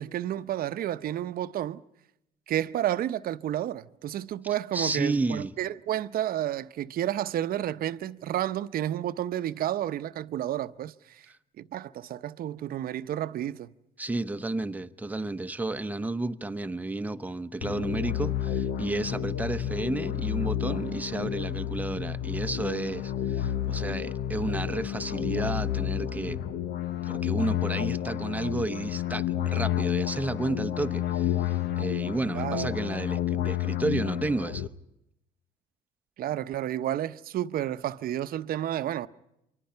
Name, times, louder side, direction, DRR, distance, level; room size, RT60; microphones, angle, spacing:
voice 1, 0.0-1.8 2.5-11.3 11.6-13.7 32.3-33.0 36.2-39.1, right 12 dB, 60° right, 0.9 m, -31 dB
voice 2, 4.7-5.5 14.0-26.4 27.0-34.7, right 2 dB, 10° right, 0.9 m, -32 dB
sound 1, 17.6-34.7, left 11 dB, 70° left, 1.0 m, -30 dB
28.5 x 24.0 x 5.7 m
cardioid pair, 110°, 17 cm